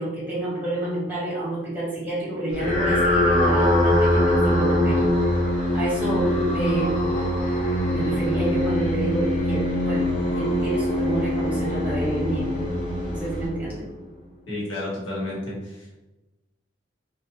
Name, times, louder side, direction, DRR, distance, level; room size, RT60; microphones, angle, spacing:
voice 1, 0.0-7.0 7.9-10.1 10.4-12.5 13.1-13.9, right 1 dB, 10° right, -7 dB, 1.2 m, -29 dB
sound 1, 2.5-14.0, left 1 dB, 40° left, 0.7 m, -23 dB
voice 2, 14.5-16.0, left 1 dB, 85° left, -6 dB, 1.2 m, -31 dB
2.8 x 2.3 x 2.8 m, 1.0 s
head